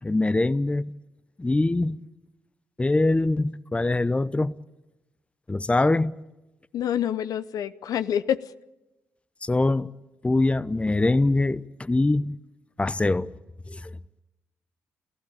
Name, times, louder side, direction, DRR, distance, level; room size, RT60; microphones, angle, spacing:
voice 1, 0.0-0.9 1.4-2.0 2.8-4.6 5.5-6.1 9.4-9.9 10.2-12.4 12.8-13.3 13.7-13.9, left 2 dB, 20° left, 0.7 m, -23 dB
voice 2, 6.7-8.5, left 10 dB, 65° left, 0.8 m, -27 dB
29.5 x 15.5 x 8.8 m
hypercardioid pair, 40°, 7 cm